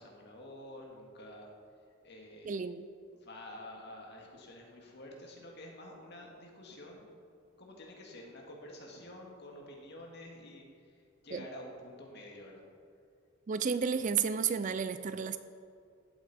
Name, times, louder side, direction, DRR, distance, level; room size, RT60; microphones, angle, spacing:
voice 1, 0.0-1.5 2.0-2.5 3.1-7.1 7.6-11.0 11.2-12.6, left 1 dB, 50° left, 0 dB, 2.0 m, -49 dB
voice 2, 2.5-2.8 11.3-11.4 13.5-15.4, right 6 dB, 35° right, 11 dB, 0.3 m, -32 dB
15.0 x 8.2 x 4.2 m, 2.3 s
head